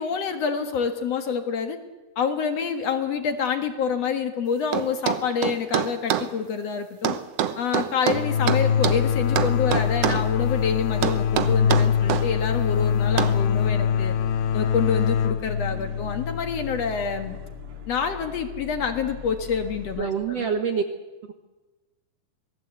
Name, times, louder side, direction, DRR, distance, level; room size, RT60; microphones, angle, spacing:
voice 1, 0.0-1.8 2.2-7.2 7.6-14.1 14.5-17.4 17.9-20.5, left 6 dB, 55° left, 7 dB, 2.2 m, -27 dB
sound 1, 4.7-6.3 7.0-9.0 9.4-10.3 11.0-12.3 13.2-13.4, right 10 dB, 80° right, 1.4 m, -25 dB
sound 2, 8.1-17.6, left 7 dB, 85° left, 2.8 m, -24 dB
sound 3, 8.9-20.0, left 8 dB, 45° right, 2.6 m, -39 dB
voice 2, 20.0-20.8 21.2-21.3, right 6 dB, 60° right, 6 dB, 1.9 m, -26 dB
26.0 x 19.0 x 8.0 m, 1.2 s
omnidirectional pair, 4.2 m